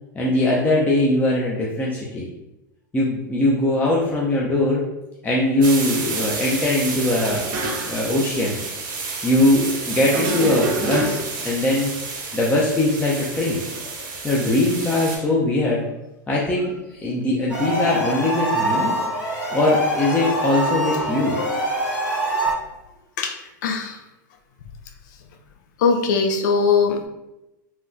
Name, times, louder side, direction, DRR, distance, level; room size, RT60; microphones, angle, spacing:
voice 1, 0.1-2.3 2.9-4.8 5.2-7.6 7.8-8.6 9.2-11.2 11.4-11.9 12.3-13.6 14.2-15.9 16.3-18.9 19.5-21.3, left 1 dB, 15° left, -5 dB, 0.6 m, -21 dB
sound 1, 5.6-15.2, right 4 dB, 75° right, 1.0 m, -31 dB
sound 2, 7.2-8.1 8.4-8.5 10.1-11.5, right 2 dB, 55° right, 0.7 m, -27 dB
sound 3, 17.5-22.5, equal, 85° left, 1.2 m, -24 dB
voice 2, 22.1-22.5 23.2-24.0 25.8-27.1, left 5 dB, 65° left, 4 dB, 0.5 m, -22 dB
3.4 x 2.3 x 2.6 m, 0.92 s
hypercardioid pair, 100°, 11 cm